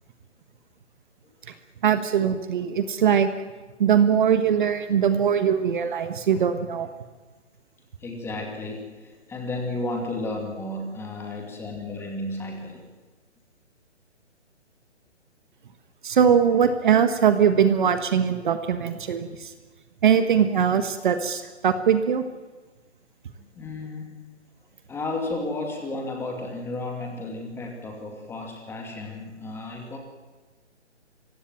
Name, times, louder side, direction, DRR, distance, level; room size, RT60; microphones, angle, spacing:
voice 1, 1.8-3.3 3.8-6.9 16.0-19.5 20.0-22.2, right 8 dB, 45° right, 9 dB, 1.4 m, -21 dB
voice 2, 8.0-12.8 23.4-24.2 24.9-30.0, left 2 dB, 5° left, 2 dB, 2.6 m, -33 dB
25.0 x 16.0 x 9.0 m, 1.3 s
hypercardioid pair, 155°, 36 cm